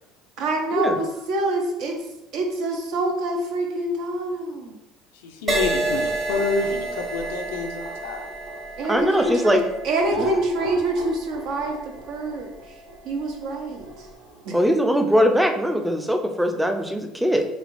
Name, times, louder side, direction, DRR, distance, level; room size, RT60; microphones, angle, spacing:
voice 1, 0.4-2.0 2.3-4.8 8.8-9.6 9.8-11.8 12.1-12.5 13.0-13.9 14.4-14.5, right 2 dB, 70° right, 1 dB, 0.7 m, -25 dB
voice 2, 5.2-8.2, left 4 dB, 85° left, 4 dB, 0.4 m, -28 dB
Crash cymbal, 5.5-13.1 13.8-14.1, right 2 dB, 40° right, 1.2 m, -31 dB
sound 1, 5.8-9.4 10.0-14.5, right 2 dB, 85° right, 1.0 m, -37 dB
voice 3, 8.9-9.6 10.2-10.3 14.5-17.5, equal, 5° right, 5 dB, 0.4 m, -21 dB
3.2 x 2.8 x 2.5 m, 0.90 s
hypercardioid pair, 80°, 0 cm